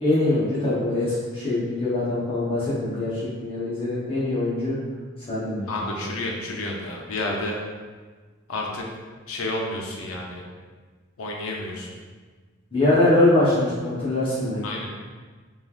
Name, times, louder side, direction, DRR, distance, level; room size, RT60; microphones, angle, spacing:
voice 1, 0.0-4.7 5.3-6.1 12.7-14.8, left 2 dB, 25° left, -10 dB, 0.7 m, -23 dB
voice 2, 5.7-7.6 8.5-8.8 9.3-10.4 11.2-11.9 14.6-14.9, left 2 dB, 90° left, -1 dB, 0.5 m, -30 dB
3.1 x 2.3 x 2.3 m, 1.4 s
head